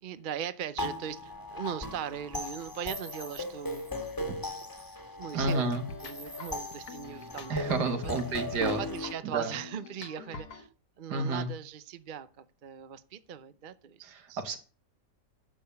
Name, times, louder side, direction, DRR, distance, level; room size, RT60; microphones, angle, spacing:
voice 1, 0.0-4.1 4.8-5.6 6.0-7.7 8.0-8.1 8.6-10.7 11.0-14.4, right 9 dB, 50° right, 0.6 m, -39 dB
sound 1, 0.8-9.1, left 1 dB, 10° left, 1.7 m, -37 dB
voice 2, 5.3-5.9 7.5-8.8 9.2-9.5 11.1-11.5 14.0-14.6, right 3 dB, 75° right, 2.1 m, -30 dB
sound 2, 5.4-10.7, left 4 dB, 65° left, 1.7 m, -45 dB
10.5 x 6.8 x 6.9 m
omnidirectional pair, 1.8 m